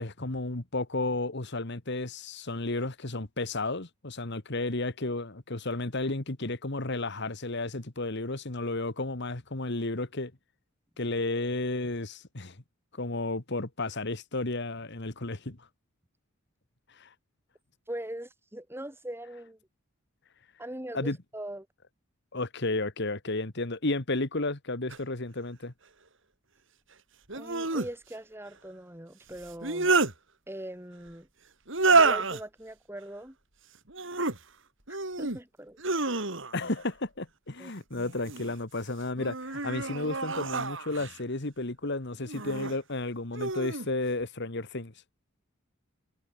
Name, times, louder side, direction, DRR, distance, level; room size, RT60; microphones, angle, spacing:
voice 1, 0.0-10.3 11.0-12.6 12.9-15.7 17.0-17.1 20.9-21.2 22.3-25.7 36.5-44.9, left 2 dB, 55° left, 1.9 m, -32 dB
voice 2, 17.9-19.6 20.6-21.7 27.3-30.0 30.5-31.3 31.9-33.4 34.9-35.8 37.6-37.7, right 1 dB, 10° right, 5.1 m, -41 dB
sound 1, 24.9-25.0 27.3-27.9 29.4-30.1 31.7-32.4 33.9-34.4 34.9-35.4 35.8-36.7 37.9-38.5 39.2-41.2 42.3-42.7 43.3-43.9, right 3 dB, 65° right, 4.0 m, -28 dB
head